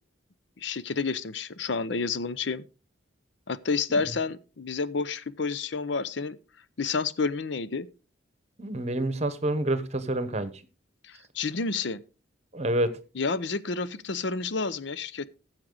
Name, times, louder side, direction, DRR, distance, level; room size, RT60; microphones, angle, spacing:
voice 1, 0.6-2.6 3.5-6.4 6.8-7.9 11.0-12.0 13.2-15.3, left 4 dB, 65° left, 0.6 m, -30 dB
voice 2, 8.6-10.5 12.5-12.9, right 1 dB, 35° right, 1.0 m, -28 dB
14.5 x 7.5 x 3.9 m
head